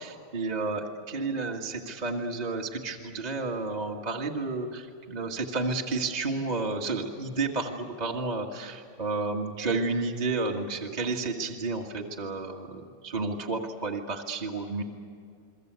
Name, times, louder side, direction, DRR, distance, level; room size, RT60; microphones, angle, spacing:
voice 1, 0.0-14.8, right 3 dB, 20° right, 1 dB, 1.6 m, -31 dB
29.5 x 22.5 x 8.1 m, 2.3 s
omnidirectional pair, 2.4 m